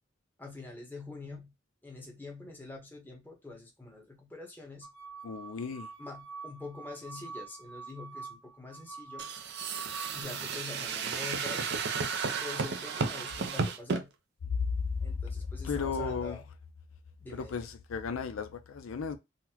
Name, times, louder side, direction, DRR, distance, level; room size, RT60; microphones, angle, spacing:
voice 1, 0.4-1.5 1.8-4.9 6.0-9.3 10.1-11.7 12.2-14.1 15.0-16.5 17.2-17.7, left 3 dB, 10° left, 0.8 m, -45 dB
sound 1, 4.8-10.2, right 4 dB, 90° right, 0.8 m, -46 dB
voice 2, 5.2-5.9 14.6-14.7 15.6-16.4 17.3-19.2, left 5 dB, 85° left, 0.4 m, -35 dB
sound 2, 9.2-14.0, right 5 dB, 55° right, 0.5 m, -33 dB
3.9 x 2.1 x 2.7 m
head